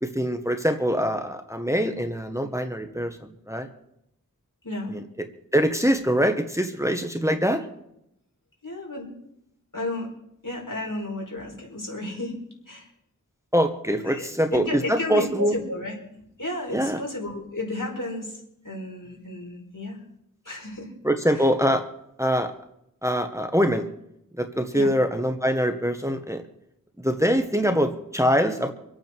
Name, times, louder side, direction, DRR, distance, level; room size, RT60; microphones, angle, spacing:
voice 1, 0.0-3.7 4.9-5.0 5.5-7.6 13.5-15.5 16.7-17.0 21.0-21.8 22.2-22.5 23.0-23.9 24.4-26.4 27.0-28.7, equal, 10° right, 6 dB, 1.3 m, -23 dB
voice 2, 4.6-4.9 8.6-9.1 9.7-10.1 10.4-12.4 12.7-12.9 14.1-18.4 18.6-20.0 20.5-20.9 21.3-21.5 24.7-24.9, left 2 dB, 75° left, -1 dB, 5.1 m, -33 dB
26.5 x 8.9 x 4.6 m, 0.81 s
wide cardioid pair, 45°, 32 cm